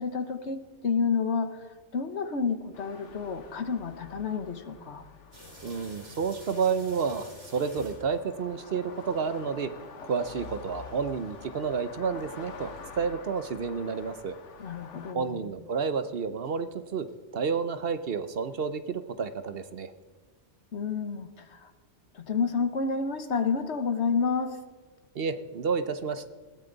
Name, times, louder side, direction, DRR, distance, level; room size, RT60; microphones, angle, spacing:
voice 1, 0.0-5.1 14.6-15.4 20.7-21.7 22.1-24.6, left 5 dB, 70° left, 9 dB, 1.5 m, -30 dB
sound 1, 2.7-15.1, left 5 dB, 85° left, 1.4 m, -47 dB
sound 2, 5.3-9.4 9.8-9.9 10.4-11.7 12.2-12.3 12.8-12.9 13.4-13.5 14.0-14.1 14.6-14.7 15.2-15.3 15.8-15.9 16.4-16.5 17.1-17.2 17.7-17.8 18.3-18.4, equal, 85° right, 5.2 m, -50 dB
voice 2, 5.6-9.7 10.0-14.4 15.1-17.1 17.3-19.9 25.1-26.3, right 5 dB, 60° right, 11 dB, 1.0 m, -30 dB
19.5 x 16.5 x 4.0 m, 1.4 s
omnidirectional pair, 1.2 m